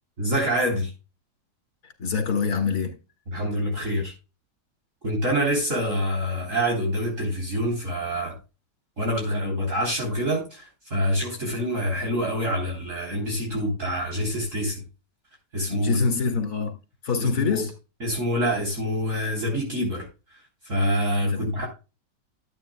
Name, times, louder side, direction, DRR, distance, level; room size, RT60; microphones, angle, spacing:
voice 1, 0.2-0.9 3.3-4.1 5.0-8.3 9.0-14.8 15.5-16.0 17.2-17.6 18.0-20.1 20.7-21.7, equal, 45° right, 3.9 m, -26 dB
voice 2, 2.0-2.9 15.7-16.7 17.0-17.7 21.3-21.6, left 5 dB, 60° left, 2.8 m, -25 dB
13.0 x 8.8 x 2.3 m
omnidirectional pair, 1.9 m